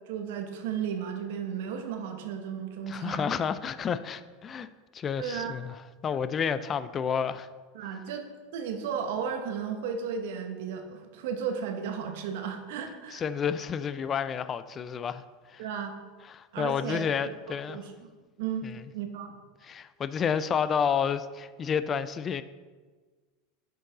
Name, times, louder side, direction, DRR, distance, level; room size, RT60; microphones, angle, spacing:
voice 1, 0.1-3.3 5.2-5.5 7.7-8.3 8.5-13.2 15.6-15.9 16.5-17.3 17.7-18.1 18.4-18.6 18.9-19.3, right 7 dB, 70° right, 1.0 m, -34 dB
voice 2, 2.9-4.7 4.9-5.7 6.0-7.5 13.1-15.2 15.5-15.6 16.3-17.8 18.6-18.8 19.6-22.4, left 7 dB, 30° left, 0.4 m, -30 dB
7.8 x 5.2 x 3.9 m
hypercardioid pair, 110°, 0 cm